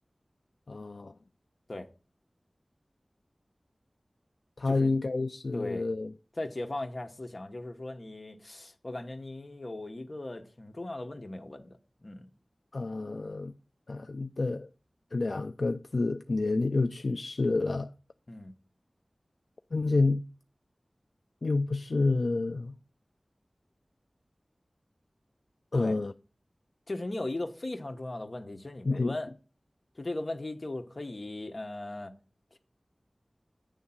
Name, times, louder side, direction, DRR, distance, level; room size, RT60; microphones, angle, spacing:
voice 1, 0.7-1.1 4.6-6.1 12.7-13.5 13.9-14.7 15.1-17.9 19.7-20.2 21.4-22.7 25.7-26.1 28.9-29.2, left 3 dB, 75° left, 0.4 m, -29 dB
voice 2, 4.6-5.0 5.5-5.9 6.4-12.3 18.3-18.5 25.7-26.0 26.9-29.3 30.0-32.1, left 2 dB, 50° left, 1.1 m, -38 dB
9.8 x 3.7 x 7.1 m
wide cardioid pair, 65°, 0 cm